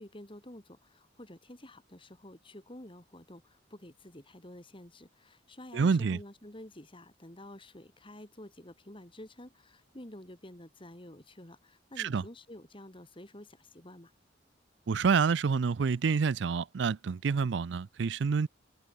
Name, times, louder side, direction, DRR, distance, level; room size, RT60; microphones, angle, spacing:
voice 1, 0.0-14.1, left 1 dB, 25° left, 2.9 m, -50 dB
voice 2, 5.7-6.2 12.0-12.2 14.9-18.5, right 5 dB, 65° right, 0.4 m, -28 dB
head